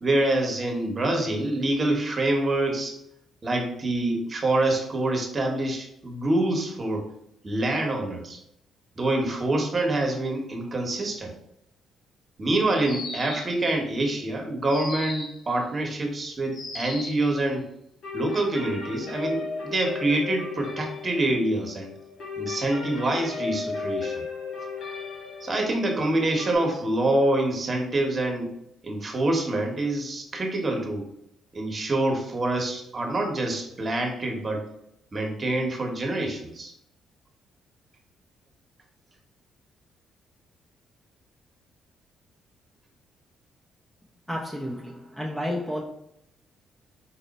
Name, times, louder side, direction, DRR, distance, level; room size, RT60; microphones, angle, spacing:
voice 1, 0.0-2.9 3.4-7.1 7.4-8.4 9.0-11.3 12.4-17.6 18.1-21.9 22.4-24.1 25.4-28.5 28.8-31.1 31.5-34.7 35.1-36.7, right 2 dB, 30° right, 2 dB, 1.0 m, -26 dB
sound 1, 12.8-13.6 14.7-15.4 16.5-17.3, left 2 dB, 50° left, 1.1 m, -36 dB
sound 2, 18.0-26.6, left 4 dB, 70° left, 1.5 m, -35 dB
voice 2, 44.3-45.8, equal, 5° left, -1 dB, 0.6 m, -31 dB
4.3 x 2.1 x 4.0 m, 0.77 s
cardioid pair, 90°, 0 cm